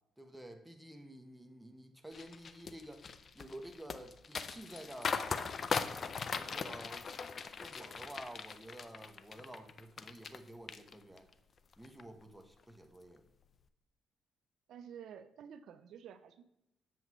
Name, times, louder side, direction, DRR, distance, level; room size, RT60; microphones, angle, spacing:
voice 1, 0.2-3.1 3.3-5.4 6.4-11.3 11.8-13.2, right 1 dB, 5° right, 4 dB, 1.0 m, -51 dB
sound 1, 2.1-10.4 10.7-11.3 11.7-12.0, left 5 dB, 45° left, 0.4 m, -39 dB
voice 2, 14.7-16.4, right 8 dB, 75° right, 11 dB, 0.5 m, -51 dB
7.6 x 7.5 x 3.1 m, 0.86 s
cardioid pair, 90°, 0 cm